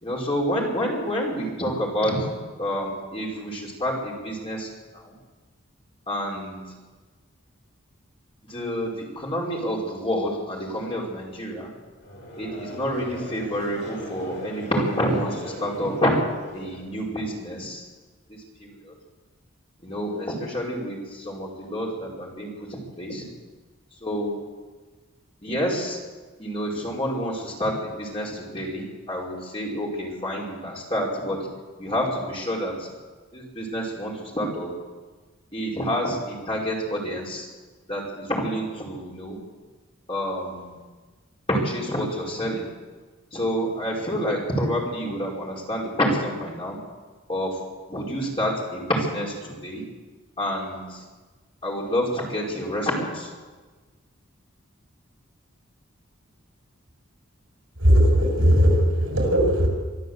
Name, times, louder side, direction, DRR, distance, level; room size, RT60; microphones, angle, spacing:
voice 1, 0.0-2.3 2.6-4.7 4.9-5.1 6.1-6.7 8.5-11.7 12.4-16.1 16.5-17.8 18.6-18.9 19.8-23.2 24.0-24.4 25.4-26.0 26.4-31.4 31.8-32.9 33.3-34.7 35.5-37.5 37.9-39.4 40.1-40.8 41.5-42.7 43.3-46.8 47.3-47.6 47.9-49.9 50.4-51.0 51.6-53.3, equal, 25° left, -2 dB, 4.8 m, -28 dB
Conversation / Crowd, 12.0-17.3, left 1 dB, 60° left, 5.9 m, -39 dB
voice 2, 57.8-59.7, equal, 70° right, 1 dB, 6.7 m, -18 dB
24.0 x 13.5 x 8.0 m, 1.3 s
head